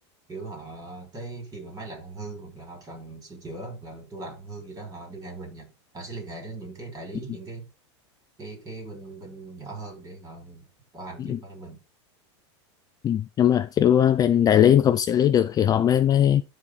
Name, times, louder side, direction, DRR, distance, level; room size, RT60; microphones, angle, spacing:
voice 1, 0.3-5.7 5.9-7.7 8.4-10.7 10.9-11.8, right 3 dB, 25° right, 6.0 m, -39 dB
voice 2, 13.0-16.4, left 10 dB, 25° left, 0.6 m, -19 dB
12.5 x 4.4 x 3.9 m
supercardioid pair, 125°, 15 cm